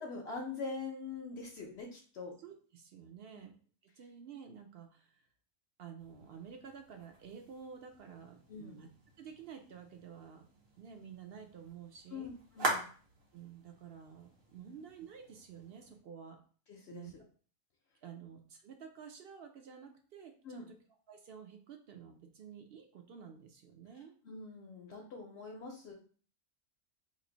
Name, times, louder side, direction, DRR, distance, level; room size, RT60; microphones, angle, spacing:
voice 1, 0.0-2.3 3.3-3.4 8.5-8.8 12.1-12.9 14.6-14.7 16.7-17.2 20.4-20.7 24.2-25.9, left 4 dB, 60° left, 0 dB, 0.9 m, -44 dB
voice 2, 2.4-3.5 4.0-5.1 5.8-8.9 9.2-10.4 10.8-12.3 13.3-16.4 16.9-17.1 18.0-20.6 21.1-24.1, right 7 dB, 60° right, 4 dB, 0.7 m, -51 dB
sound 1, 6.0-16.0, right 2 dB, 90° right, 1.4 m, -44 dB
3.1 x 2.5 x 3.8 m, 0.42 s
omnidirectional pair, 1.3 m